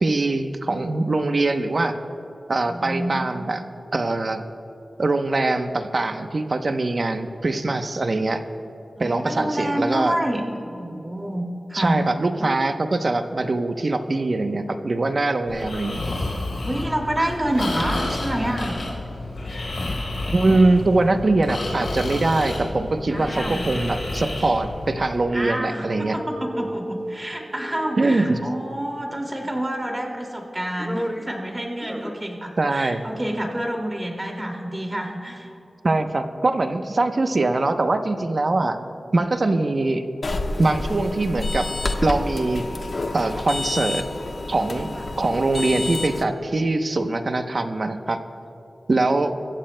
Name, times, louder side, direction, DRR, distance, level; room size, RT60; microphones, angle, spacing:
voice 1, 0.0-1.9 2.5-3.6 3.9-4.4 5.0-8.4 9.0-10.2 11.7-16.0 20.3-26.2 28.0-28.4 32.6-33.0 35.8-38.8 39.1-40.0 40.6-41.7 42.0-42.7 43.1-44.0 44.5-48.2 48.9-49.3, right 2 dB, 50° right, 7 dB, 0.8 m, -22 dB
voice 2, 2.6-3.4 9.0-12.0 12.4-12.5 16.6-18.8 23.1-23.7 25.3-35.5 38.6-38.7 45.0-45.1, right 1 dB, 20° right, 1 dB, 2.3 m, -28 dB
Breathing, 15.5-25.2, left 2 dB, 80° left, 3.8 m, -30 dB
sound 1, 25.9-28.4 29.6-30.2 30.6-31.4 31.8-32.3 32.6-32.7, equal, 5° left, 1.0 m, -33 dB
sound 2, 40.2-46.2, left 2 dB, 60° left, 1.0 m, -29 dB
25.0 x 15.0 x 2.2 m, 2.9 s
wide cardioid pair, 90°, 0 cm